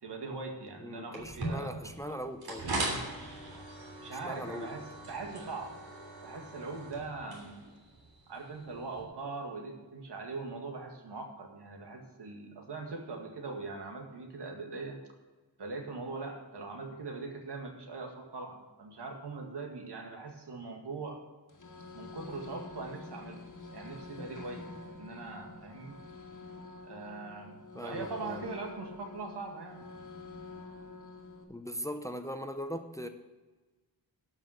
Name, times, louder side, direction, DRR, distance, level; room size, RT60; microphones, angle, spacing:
voice 1, 0.0-2.2 4.0-5.8 6.2-7.6 8.3-15.0 15.6-21.2 21.9-23.4 23.7-26.0 26.9-29.8, right 3 dB, 90° right, 3 dB, 2.0 m, -41 dB
voice 2, 0.8-2.7 4.1-4.8 27.7-28.4 31.5-33.1, equal, 10° left, 8 dB, 0.5 m, -40 dB
sound 1, 1.1-9.0, right 2 dB, 65° right, 3.3 m, -40 dB
sound 2, 21.5-31.4, left 3 dB, 50° left, 1.6 m, -47 dB
12.0 x 5.8 x 7.8 m, 1.3 s
wide cardioid pair, 175°, 39 cm